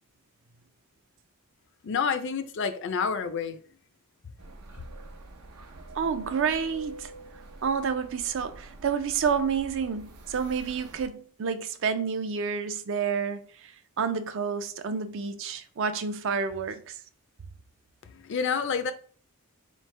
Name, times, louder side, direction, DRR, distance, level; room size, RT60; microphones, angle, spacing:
voice 1, 1.8-3.6 18.0-18.9, left 6 dB, 55° left, 0.4 m, -29 dB
sound 1, 4.4-11.1, right 2 dB, 90° right, 0.7 m, -46 dB
voice 2, 5.9-7.1 7.6-13.7 14.0-17.0, right 6 dB, 55° right, 0.4 m, -29 dB
4.0 x 3.2 x 3.2 m
head